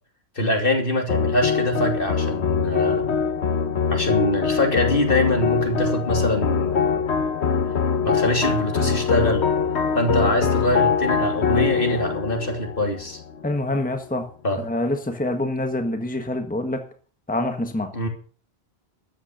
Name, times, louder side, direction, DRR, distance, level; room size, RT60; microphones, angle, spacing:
voice 1, 0.3-3.1 3.9-7.0 8.0-9.4 9.9-13.2 14.4-14.7 17.9-18.1, left 1 dB, 55° left, 3.2 m, -24 dB
sound 1, 1.1-13.6, left 6 dB, 85° left, 1.5 m, -23 dB
voice 2, 13.4-14.3 14.6-16.8 17.3-17.9, left 1 dB, 10° left, 1.5 m, -26 dB
13.5 x 9.8 x 6.6 m
omnidirectional pair, 1.1 m